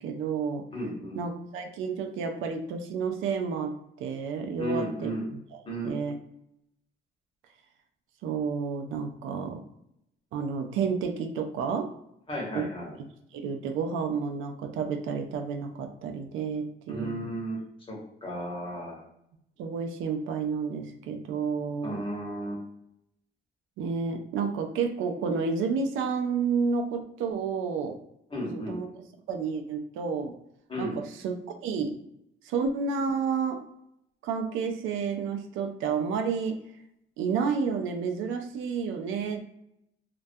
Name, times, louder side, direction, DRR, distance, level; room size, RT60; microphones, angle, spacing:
voice 1, 0.0-0.7 1.2-5.1 5.5-5.6 5.8-6.2 8.2-9.6 10.3-11.9 12.5-12.7 13.3-17.3 19.6-22.0 23.8-28.0 28.5-28.9 29.3-30.3 30.8-32.0 32.4-33.6 34.2-36.6 37.2-39.4, right 5 dB, 90° right, 6 dB, 0.4 m, -30 dB
voice 2, 0.7-1.2 4.6-5.3 5.7-5.9 12.3-13.0 16.9-17.6 17.9-19.0 21.8-22.6 28.3-28.8 30.7-31.0, equal, 25° left, -2 dB, 0.9 m, -34 dB
2.2 x 2.2 x 2.6 m, 0.78 s
cardioid pair, 90°, 20 cm